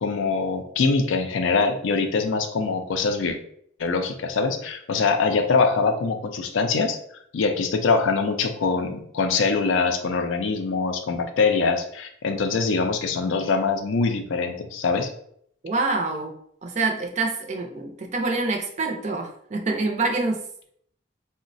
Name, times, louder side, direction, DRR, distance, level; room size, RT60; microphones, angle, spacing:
voice 1, 0.0-3.4 3.8-7.0 7.3-15.1, left 4 dB, 75° left, 6 dB, 0.4 m, -23 dB
voice 2, 15.6-16.4 16.6-20.4, right 3 dB, 35° right, 2 dB, 0.4 m, -26 dB
3.8 x 2.1 x 2.6 m, 0.67 s
head